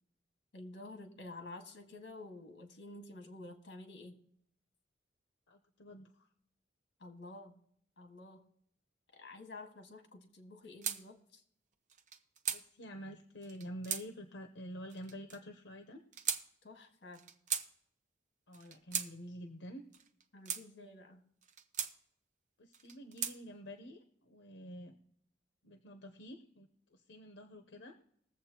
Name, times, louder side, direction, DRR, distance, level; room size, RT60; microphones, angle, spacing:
voice 1, 0.5-4.2 7.0-7.6 8.0-8.5 9.1-11.4 16.6-17.2 20.3-21.2, left 2 dB, 70° left, 5 dB, 1.6 m, -50 dB
voice 2, 5.5-6.3 12.5-16.0 18.5-19.9 22.6-24.9 25.6-28.0, equal, 85° left, 5 dB, 0.9 m, -48 dB
sound 1, 10.8-11.0 11.9-12.6 13.4-14.0 14.9-15.4 16.1-16.4 17.1-17.7 18.5-19.1 19.9-20.6 21.4-21.9 22.7-23.4, right 7 dB, 45° right, 0.7 m, -38 dB
21.0 x 7.6 x 2.9 m, 0.69 s
head